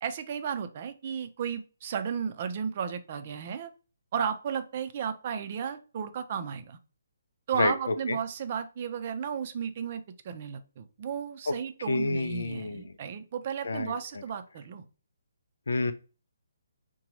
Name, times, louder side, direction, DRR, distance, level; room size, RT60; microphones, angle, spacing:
voice 1, 0.0-3.7 4.1-6.8 7.5-14.9, right 7 dB, 40° right, 9 dB, 0.5 m, -34 dB
voice 2, 7.5-8.2 11.5-11.6 11.9-12.9 13.6-13.9 15.7-15.9, left 3 dB, 70° left, 10 dB, 0.5 m, -29 dB
3.8 x 2.3 x 3.0 m, 0.34 s
figure-of-eight pair, 140°, 0 cm